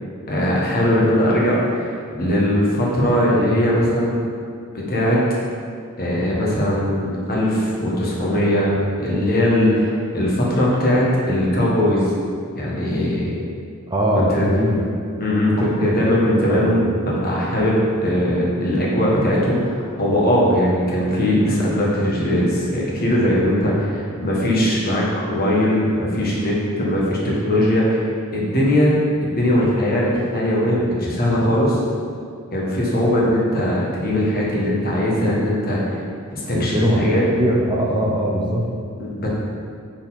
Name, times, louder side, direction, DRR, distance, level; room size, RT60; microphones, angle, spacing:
voice 1, 0.3-4.2 4.7-5.2 6.0-12.1 12.6-13.3 14.1-14.5 15.2-28.0 28.3-31.8 32.5-36.0 36.3-37.2 39.0-39.3, equal, 45° left, -4 dB, 1.3 m, -20 dB
voice 2, 13.9-14.9 16.5-16.7 36.5-38.7, equal, 20° right, -2 dB, 0.6 m, -21 dB
6.4 x 4.3 x 4.1 m, 2.2 s
head